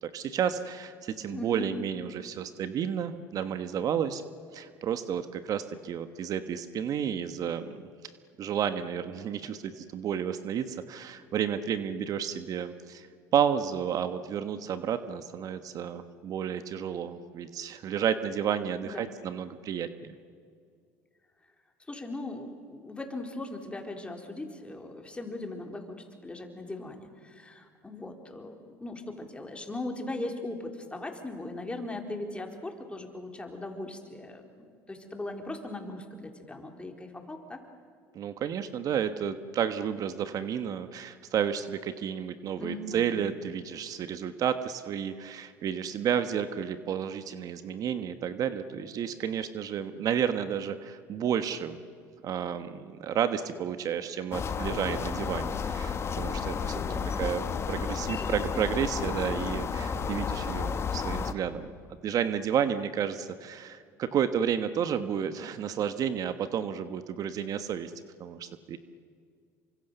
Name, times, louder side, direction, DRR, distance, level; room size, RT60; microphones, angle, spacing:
voice 1, 0.0-4.2 4.5-7.9 8.4-13.1 13.3-20.1 38.1-51.8 52.2-56.8 57.2-61.7 62.0-67.9 68.2-68.8, right 8 dB, 50° right, 10 dB, 1.3 m, -31 dB
voice 2, 1.3-1.6 18.8-19.1 21.9-37.6 42.6-43.1 56.7-57.3 58.0-58.6, left 2 dB, 15° left, 3 dB, 4.0 m, -39 dB
sound 1, 54.3-61.3, left 6 dB, 35° left, 1.6 m, -32 dB
28.0 x 24.5 x 6.9 m, 2.2 s
supercardioid pair, 85°, 8 cm